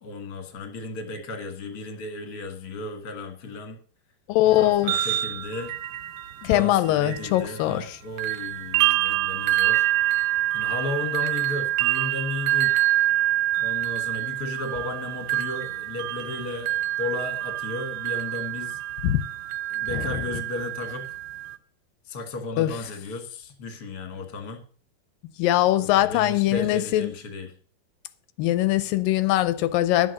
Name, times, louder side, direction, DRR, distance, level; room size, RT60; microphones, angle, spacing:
voice 1, 0.0-3.8 4.4-5.7 6.4-9.9 10.5-12.9 13.6-18.8 19.7-21.2 22.0-24.6 25.8-27.5, left 2 dB, 40° left, 1.6 m, -34 dB
voice 2, 4.3-5.0 6.4-8.0 19.0-19.2 19.9-20.1 22.6-22.7 25.4-27.1 28.4-30.1, left 14 dB, 80° left, 2.2 m, -22 dB
sound 1, 4.6-7.9 8.2-21.6, right 14 dB, 85° right, 1.7 m, -26 dB
11.5 x 7.5 x 6.5 m
omnidirectional pair, 4.3 m